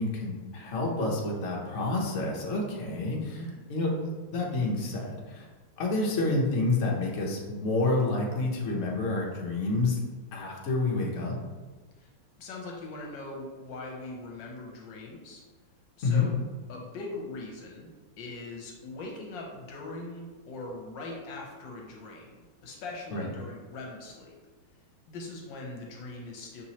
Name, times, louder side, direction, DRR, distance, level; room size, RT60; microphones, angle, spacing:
voice 1, 0.0-3.9 4.3-5.5 5.8-10.0 10.3-11.4 16.0-16.3 23.1-23.3, left 2 dB, 55° left, -2 dB, 0.8 m, -28 dB
voice 2, 12.4-15.4 16.0-16.3 16.7-17.9 18.2-24.3 25.1-26.6, left 2 dB, 75° left, 0 dB, 1.4 m, -41 dB
5.9 x 3.0 x 2.8 m, 1.3 s
omnidirectional pair, 2.2 m